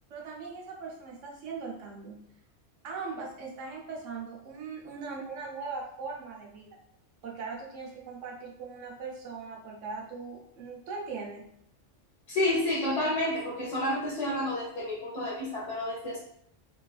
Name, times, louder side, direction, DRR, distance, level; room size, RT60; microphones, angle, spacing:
voice 1, 0.1-2.3 2.8-6.8 7.2-11.5, right 4 dB, 80° right, -1 dB, 1.0 m, -40 dB
voice 2, 12.3-16.2, left 1 dB, 70° left, -6 dB, 1.1 m, -30 dB
3.0 x 2.4 x 2.3 m, 0.69 s
omnidirectional pair, 1.3 m